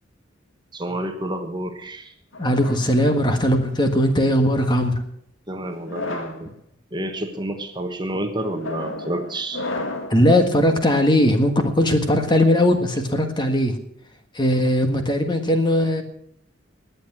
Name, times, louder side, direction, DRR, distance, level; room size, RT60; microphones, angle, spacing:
voice 1, 0.7-2.1 5.5-6.5 6.9-9.6, right 1 dB, 25° right, 6 dB, 1.2 m, -29 dB
sound 1, 2.3-3.8 4.5-4.9 5.7-6.4 7.1-7.4 8.4-10.2, left 2 dB, 90° left, 2.0 m, -33 dB
voice 2, 2.4-5.0 10.1-13.7 14.3-16.0, left 1 dB, 25° left, 6 dB, 1.6 m, -19 dB
20.0 x 8.2 x 6.2 m, 0.67 s
head